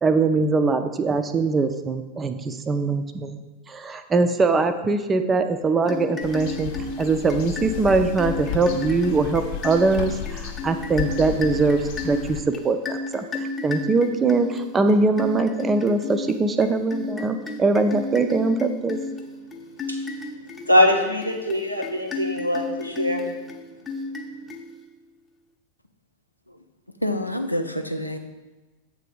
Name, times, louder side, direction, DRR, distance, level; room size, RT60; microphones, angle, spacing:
voice 1, 0.0-3.4 3.7-6.7 7.0-19.0, right 3 dB, 20° right, 9 dB, 0.5 m, -22 dB
sound 1, 5.8-25.0, left 3 dB, 15° left, 0.7 m, -34 dB
sound 2, 6.2-12.4, left 8 dB, 50° left, 0.7 m, -33 dB
voice 2, 20.7-23.3, left 1 dB, 85° right, 1 dB, 0.9 m, -22 dB
voice 3, 27.0-28.2, left 1 dB, 90° left, 6 dB, 0.5 m, -27 dB
7.5 x 3.3 x 5.2 m, 1.2 s
figure-of-eight pair, 90°, 0 cm